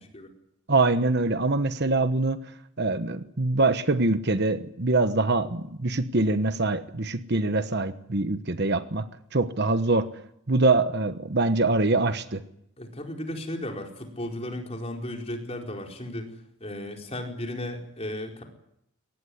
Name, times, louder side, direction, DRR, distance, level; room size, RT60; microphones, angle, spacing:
voice 1, 0.7-2.4 2.8-9.1 9.3-10.1 10.5-12.4, right 3 dB, 50° right, 10 dB, 1.2 m, -24 dB
voice 2, 12.8-16.3 16.6-18.4, left 1 dB, 30° left, 1 dB, 4.5 m, -35 dB
23.0 x 18.5 x 9.8 m, 0.76 s
head